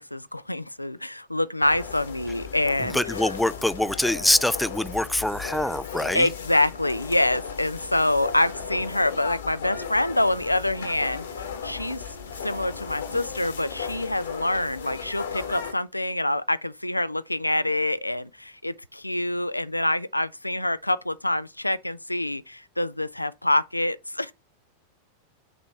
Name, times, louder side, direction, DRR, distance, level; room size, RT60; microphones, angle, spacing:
voice 1, 0.0-3.0 6.1-24.3, left 1 dB, 85° left, 0.3 m, -26 dB
sound 1, 1.6-15.7, left 7 dB, 65° left, 1.2 m, -36 dB
voice 2, 2.9-6.3, left 1 dB, 5° left, 0.3 m, -24 dB
6.0 x 3.1 x 5.3 m
figure-of-eight pair, 90°, 0 cm